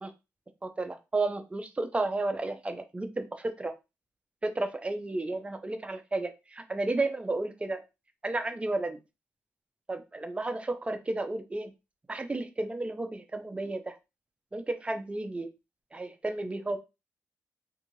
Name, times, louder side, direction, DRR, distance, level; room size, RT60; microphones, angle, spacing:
voice 1, 0.6-3.7 4.4-7.8 8.2-9.0 9.9-11.7 12.1-13.9 14.5-15.5 15.9-16.8, right 2 dB, 25° right, 7 dB, 0.6 m, -32 dB
2.7 x 2.4 x 2.9 m, 0.26 s
cardioid pair, 65°, 5 cm